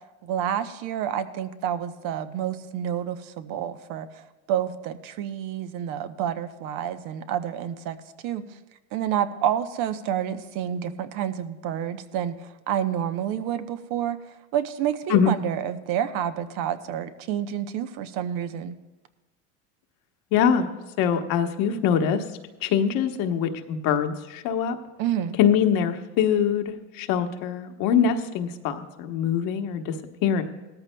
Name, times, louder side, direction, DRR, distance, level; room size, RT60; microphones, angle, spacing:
voice 1, 0.2-4.2 4.5-8.0 8.2-8.4 8.9-12.3 12.7-14.2 14.5-18.7 25.0-25.4, right 10 dB, 60° right, 10 dB, 0.8 m, -29 dB
voice 2, 20.3-20.7 21.0-22.2 22.6-24.8 25.4-30.4, left 8 dB, 65° left, 6 dB, 1.1 m, -23 dB
17.5 x 13.5 x 2.2 m, 1.1 s
supercardioid pair, 100°, 37 cm